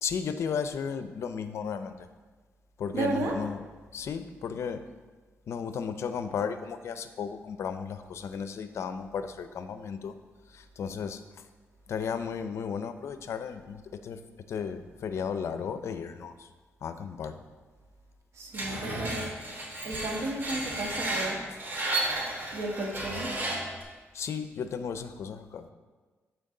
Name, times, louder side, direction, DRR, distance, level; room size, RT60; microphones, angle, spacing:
voice 1, 0.0-2.1 2.8-3.6 3.9-4.8 5.5-10.2 10.5-11.5 11.9-14.2 14.5-16.5 16.8-17.4 24.1-25.7, left 6 dB, 70° left, 10 dB, 0.6 m, -34 dB
voice 2, 2.9-3.3 18.3-19.3 19.8-21.4 22.5-23.4, right 2 dB, 75° right, 1 dB, 1.5 m, -33 dB
Screech, 18.5-23.8, right 1 dB, 40° right, 2.8 m, -33 dB
13.5 x 4.5 x 3.8 m, 1.3 s
cardioid pair, 105°, 5 cm